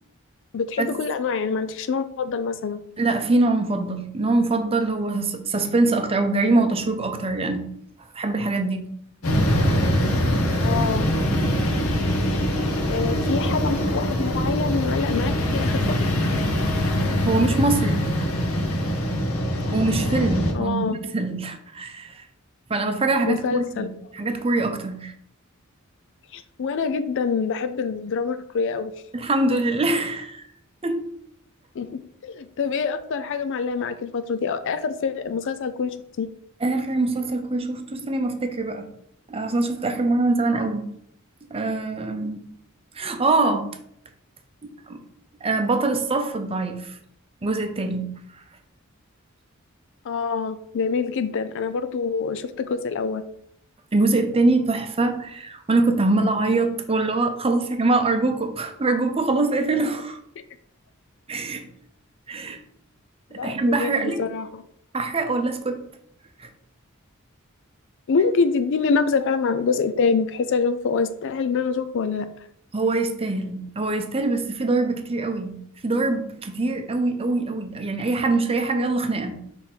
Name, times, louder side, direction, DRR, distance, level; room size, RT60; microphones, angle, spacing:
voice 1, 0.5-2.8 10.6-11.1 12.9-16.0 20.5-21.0 23.2-23.9 24.2-24.3 26.3-28.9 31.8-36.3 50.0-53.2 63.3-64.6 68.1-72.3, left 5 dB, 60° left, 11 dB, 0.4 m, -25 dB
voice 2, 3.0-7.7 8.1-9.0 17.2-18.1 19.7-22.2 22.7-25.1 29.1-30.4 30.8-31.0 36.6-38.9 39.3-40.9 41.5-42.4 42.9-43.7 44.6-45.0 45.4-47.0 47.4-48.1 53.9-60.2 61.3-61.7 62.3-62.6 63.3-64.2 64.9-65.8 66.4-66.5 72.7-79.5, right 2 dB, 25° right, 7 dB, 0.6 m, -23 dB
sound 1, 9.2-20.5, equal, 80° left, 1.1 m, -23 dB
6.0 x 3.5 x 4.4 m, 0.71 s
head